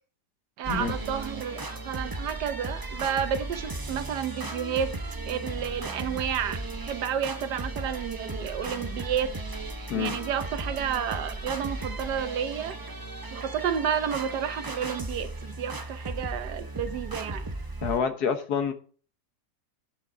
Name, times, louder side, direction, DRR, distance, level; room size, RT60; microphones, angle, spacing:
sound 1, 0.6-18.0, right 2 dB, 30° right, 0.4 m, -36 dB
voice 1, 0.6-4.9 5.3-9.3 9.9-12.8 13.3-17.4, right 8 dB, 80° right, 1.5 m, -31 dB
voice 2, 17.8-18.7, left 6 dB, 70° left, 1.6 m, -27 dB
9.8 x 6.8 x 4.9 m
omnidirectional pair, 1.8 m